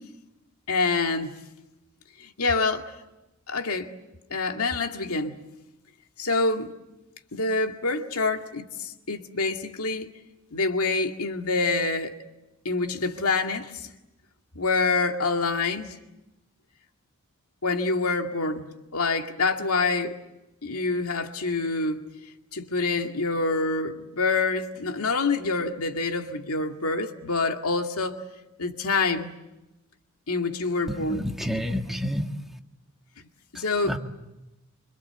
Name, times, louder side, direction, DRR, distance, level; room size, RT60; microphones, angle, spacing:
voice 1, 0.7-1.4 2.2-2.9 3.5-3.9 4.3-5.4 6.2-6.7 7.3-10.1 10.5-12.2 12.6-13.9 14.6-16.0 17.6-20.2 20.6-22.1 22.5-28.2 28.6-29.4 30.3-31.3 33.5-34.0, left 3 dB, 85° left, 2.2 m, -26 dB
voice 2, 30.9-32.3 33.5-34.0, equal, ahead, 1.7 m, -30 dB
26.0 x 26.0 x 8.1 m
head